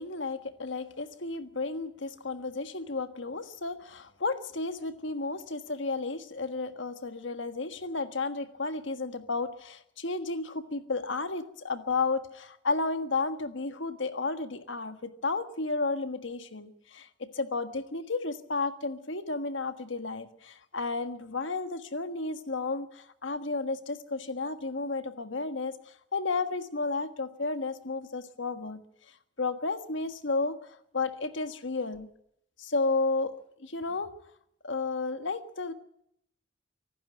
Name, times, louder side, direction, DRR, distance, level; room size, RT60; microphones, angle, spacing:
voice 1, 0.0-25.7 26.1-28.8 29.4-30.6 30.9-32.1 32.6-33.3 33.6-34.1 34.6-35.7, left 3 dB, 65° left, 9 dB, 1.5 m, -32 dB
25.0 x 12.0 x 8.9 m, 0.74 s
head